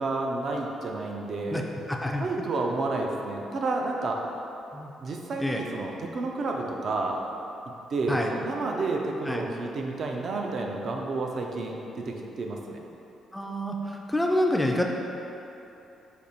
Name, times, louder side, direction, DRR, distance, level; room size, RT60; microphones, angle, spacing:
voice 1, 0.0-1.7 2.2-4.2 5.0-7.2 7.9-12.8, right 3 dB, 55° right, 1 dB, 0.5 m, -30 dB
voice 2, 1.9-2.3 4.7-4.9 5.4-5.6 8.1-8.3 9.3-9.4 13.3-14.8, left 1 dB, 10° left, 1 dB, 0.4 m, -27 dB
5.1 x 2.5 x 4.1 m, 2.9 s
cardioid pair, 90°, 0 cm